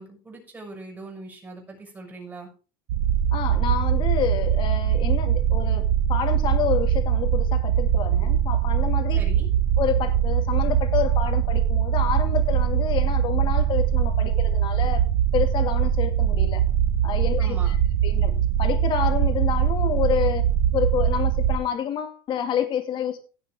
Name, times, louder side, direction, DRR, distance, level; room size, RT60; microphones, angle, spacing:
voice 1, 0.0-2.5 9.1-9.5 17.4-17.8, right 3 dB, 15° right, 0 dB, 6.2 m, -41 dB
sound 1, 2.9-21.6, right 9 dB, 85° right, 1.4 m, -22 dB
voice 2, 3.3-9.2 9.8-15.0 15.3-16.6 17.0-17.8 18.0-20.5 20.7-23.3, left 9 dB, 45° left, 6 dB, 2.5 m, -28 dB
17.0 x 7.3 x 3.7 m, 0.36 s
supercardioid pair, 130°, 12 cm